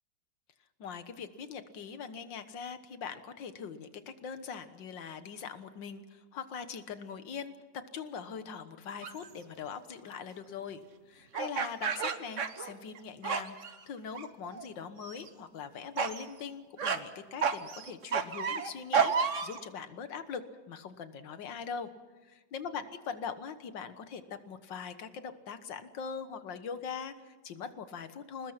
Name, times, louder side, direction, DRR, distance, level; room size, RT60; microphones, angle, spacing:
voice 1, 0.8-10.8 11.1-20.4 20.7-21.9 22.2-28.5, left 6 dB, 80° left, 10 dB, 2.0 m, -42 dB
sound 1, 9.0-9.3 11.3-13.0 13.2-13.7 14.1-14.6 15.0-15.3 16.0-16.2 16.8-17.0 17.4-19.6, right 6 dB, 45° right, 1.3 m, -31 dB
27.0 x 20.0 x 5.9 m, 1.3 s
omnidirectional pair, 2.0 m